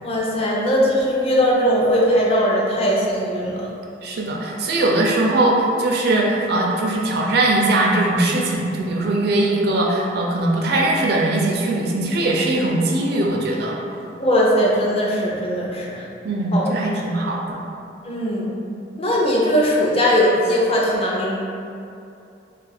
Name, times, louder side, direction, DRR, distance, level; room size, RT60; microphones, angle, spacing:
voice 1, 0.0-3.7 14.2-16.0 16.5-16.6 18.0-18.5 19.0-21.4, equal, 35° left, -4 dB, 0.5 m, -19 dB
voice 2, 4.0-13.7 16.2-17.6, right 2 dB, 60° right, -2 dB, 0.4 m, -20 dB
2.4 x 2.3 x 4.0 m, 2.6 s
head